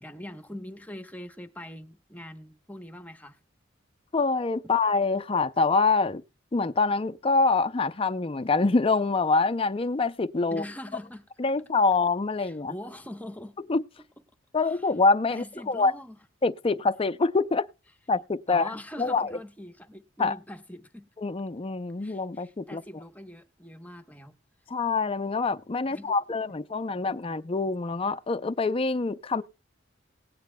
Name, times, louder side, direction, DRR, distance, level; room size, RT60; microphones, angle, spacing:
voice 1, 0.0-3.4 10.5-11.3 12.4-13.6 14.6-14.9 15.3-16.2 18.5-21.1 22.0-24.4 25.9-26.4, left 1 dB, 10° left, 1.0 m, -42 dB
voice 2, 4.1-6.2 6.5-10.6 11.4-12.7 13.7-13.8 14.5-15.9 16.4-17.7 18.1-18.7 19.0-19.3 20.2-20.4 21.2-22.8 24.7-29.4, left 3 dB, 30° left, 0.5 m, -25 dB
19.0 x 9.3 x 2.2 m
head